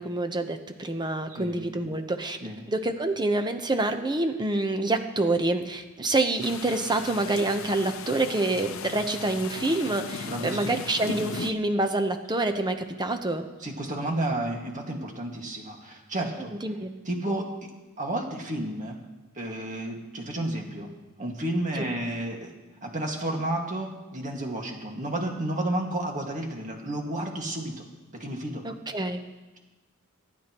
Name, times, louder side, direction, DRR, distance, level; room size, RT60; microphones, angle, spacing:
voice 1, 0.0-2.4 2.7-13.5 16.6-16.9 21.8-21.9 28.6-29.2, right 2 dB, 20° right, 6 dB, 0.9 m, -27 dB
voice 2, 1.3-1.6 2.4-2.6 10.2-10.8 13.6-16.5 17.1-17.4 18.0-19.0 19.4-20.9 21.2-22.5 22.8-27.7 28.1-28.6, right 1 dB, 35° right, 1 dB, 1.9 m, -31 dB
sound 1, 6.4-11.5, left 5 dB, 65° left, 0.6 m, -37 dB
25.0 x 10.5 x 3.0 m, 1.2 s
head